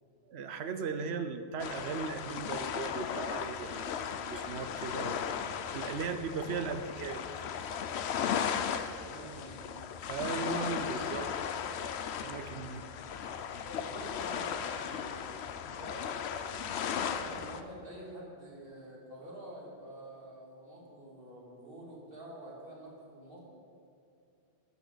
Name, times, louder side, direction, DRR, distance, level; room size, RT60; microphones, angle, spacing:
voice 1, 0.3-5.3 5.7-7.2 10.1-11.3 12.2-12.8, right 5 dB, 85° right, 9 dB, 1.0 m, -37 dB
sound 1, 1.6-17.6, left 7 dB, 90° left, 0.9 m, -36 dB
voice 2, 8.2-9.7 13.6-16.1 17.1-23.4, right 1 dB, 60° right, -3 dB, 2.7 m, -48 dB
13.0 x 11.0 x 4.0 m, 2.6 s
omnidirectional pair, 1.1 m